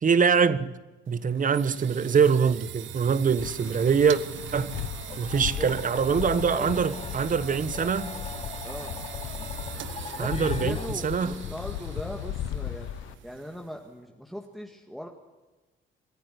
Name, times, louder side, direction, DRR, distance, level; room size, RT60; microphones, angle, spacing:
voice 1, 0.0-0.7 1.1-4.2 4.5-4.7 5.2-8.1 10.2-10.8 11.0-11.3, right 6 dB, 40° right, 1.2 m, -23 dB
sound 1, 1.1-13.9, right 11 dB, 75° right, 1.2 m, -42 dB
Wind, 3.4-13.1, left 11 dB, 90° left, 1.0 m, -36 dB
sound 2, 4.7-10.9, left 5 dB, 30° left, 1.4 m, -42 dB
voice 2, 5.3-5.7 6.1-7.0 8.6-9.0 10.2-12.9 13.2-15.1, equal, ahead, 2.0 m, -39 dB
26.5 x 10.0 x 9.9 m
cardioid pair, 90°, 20 cm